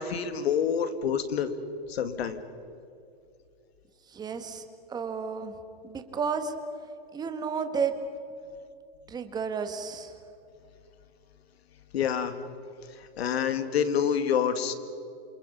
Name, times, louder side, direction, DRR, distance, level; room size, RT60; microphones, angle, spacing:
voice 1, 0.0-1.5 1.9-2.4 11.9-12.3 13.2-14.7, left 8 dB, 80° left, 10 dB, 2.4 m, -27 dB
voice 2, 4.1-4.6 4.9-5.5 5.8-6.5 7.1-7.9 9.1-10.1, right 6 dB, 15° right, 7 dB, 1.8 m, -32 dB
28.5 x 28.0 x 5.8 m, 2.5 s
supercardioid pair, 160°, 31 cm